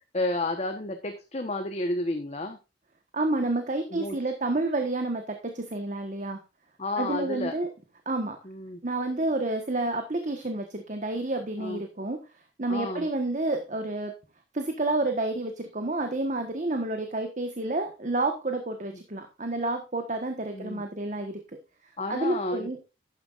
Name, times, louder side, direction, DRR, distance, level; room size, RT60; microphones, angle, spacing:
voice 1, 0.1-2.6 3.9-4.2 6.8-7.5 8.4-8.8 11.6-11.8 12.7-13.1 20.5-20.8 22.0-22.7, left 2 dB, 35° left, 5 dB, 1.2 m, -31 dB
voice 2, 3.1-6.4 7.0-7.7 8.0-8.4 8.8-12.2 12.6-14.1 14.5-21.4 22.1-22.8, right 2 dB, 45° right, 5 dB, 1.4 m, -29 dB
12.0 x 9.6 x 2.5 m, 0.28 s
head